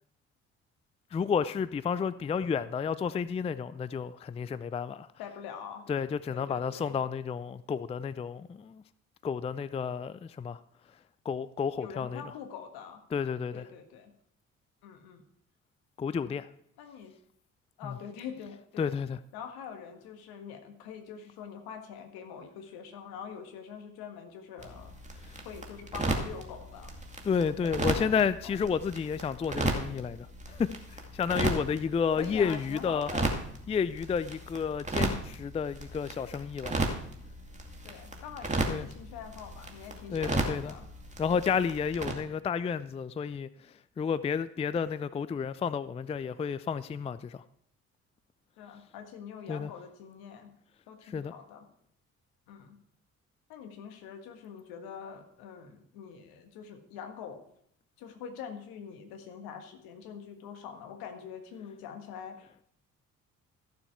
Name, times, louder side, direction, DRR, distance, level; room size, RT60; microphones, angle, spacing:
voice 1, 1.1-5.1 5.9-8.8 9.2-10.6 11.3-12.2 13.1-13.7 16.0-16.5 17.8-18.0 18.8-19.2 27.2-33.1 33.7-36.8 38.7-38.9 40.1-40.7 41.2-43.5 44.0-47.4 49.5-49.7 51.1-51.3, left 6 dB, 15° left, 0.4 m, -31 dB
voice 2, 5.2-5.9 6.3-7.0 11.8-13.0 13.5-14.1 14.8-15.2 16.2-16.4 16.8-17.1 17.8-18.9 19.3-25.0 25.4-26.9 27.6-28.2 28.4-28.6 32.1-33.4 37.8-40.9 48.6-50.5 50.9-51.6 52.5-52.8 53.5-57.4 58.0-62.6, left 7 dB, 70° left, 1.6 m, -44 dB
sound 1, 24.6-42.1, right 2 dB, 20° right, 2.3 m, -35 dB
14.5 x 7.0 x 4.6 m
hypercardioid pair, 45°, 39 cm